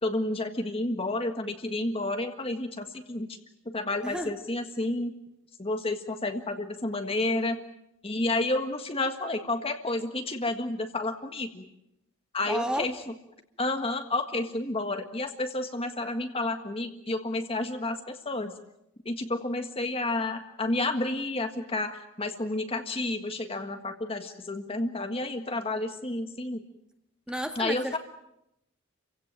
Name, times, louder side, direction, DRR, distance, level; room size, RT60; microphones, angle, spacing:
voice 1, 0.0-3.3 3.6-5.1 5.6-7.6 8.0-11.7 12.3-12.9 13.6-18.5 19.0-26.6 27.5-28.0, left 2 dB, 30° left, 6 dB, 1.7 m, -30 dB
voice 2, 4.0-4.4 12.5-12.9 27.3-28.0, equal, 5° right, 5 dB, 1.8 m, -32 dB
29.5 x 16.5 x 9.1 m, 0.84 s
head